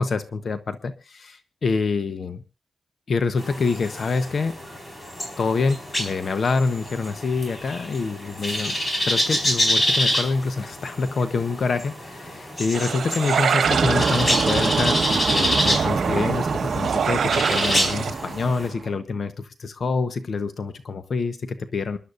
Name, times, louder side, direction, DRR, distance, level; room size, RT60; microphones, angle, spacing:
voice 1, 0.0-2.4 3.1-4.5 5.4-8.8 9.1-22.0, left 4 dB, 55° left, 10 dB, 1.0 m, -26 dB
sound 1, 3.4-18.7, equal, 25° left, 4.6 m, -27 dB
sound 2, 12.7-18.1, right 7 dB, 85° right, 1.3 m, -27 dB
sound 3, 13.6-18.9, right 5 dB, 50° right, 1.2 m, -25 dB
28.0 x 11.5 x 2.6 m, 0.29 s
wide cardioid pair, 145°, 0 cm